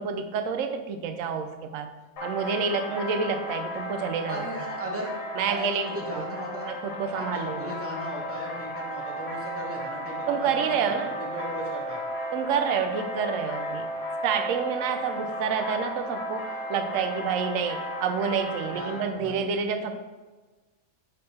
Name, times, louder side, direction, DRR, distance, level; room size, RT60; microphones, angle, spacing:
voice 1, 0.0-1.9 2.2-4.5 5.4-6.2 6.6-7.8 10.3-11.2 12.3-13.9 14.2-20.0, right 6 dB, 65° right, 7 dB, 0.9 m, -28 dB
sound 1, 2.2-19.0, equal, 85° left, 1.8 m, -34 dB
voice 2, 4.3-5.1 5.5-6.7 7.1-12.0 18.7-19.4, right 1 dB, 10° right, -2 dB, 0.8 m, -37 dB
6.5 x 3.7 x 4.1 m, 1.3 s
omnidirectional pair, 1.7 m